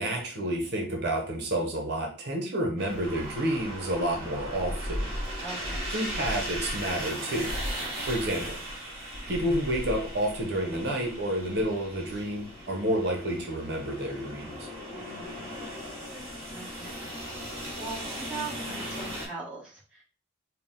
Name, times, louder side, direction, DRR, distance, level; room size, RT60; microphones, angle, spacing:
voice 1, 0.0-5.1 5.9-7.5 8.0-8.6 9.3-14.7, right 1 dB, 55° right, 2 dB, 0.8 m, -30 dB
sound 1, 2.8-19.3, equal, 30° right, 1.6 m, -37 dB
voice 2, 5.4-5.9 14.9-15.4 16.5-17.1 17.8-20.0, right 4 dB, 5° right, -6 dB, 1.2 m, -41 dB
4.6 x 2.1 x 3.6 m, 0.40 s
head